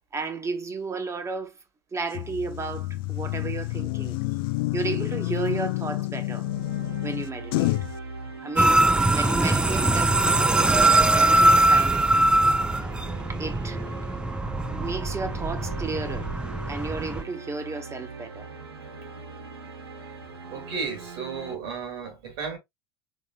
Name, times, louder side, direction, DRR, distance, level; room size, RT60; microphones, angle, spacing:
voice 1, 0.1-1.6 1.9-4.2 4.7-6.5 7.0-7.8 8.4-8.8 9.1-12.1 13.3-13.8 14.7-16.3 16.7-18.5, right 4 dB, 25° right, 1.1 m, -33 dB
sound 1, 2.1-8.0, left 19 dB, 65° left, 0.4 m, -29 dB
sound 2, 6.4-21.6, right 3 dB, 85° right, 1.2 m, -41 dB
sound 3, 8.6-17.2, right 2 dB, 5° right, 0.5 m, -22 dB
voice 2, 20.5-22.6, right 5 dB, 70° right, 3.1 m, -33 dB
4.9 x 3.8 x 2.4 m
hypercardioid pair, 70°, 13 cm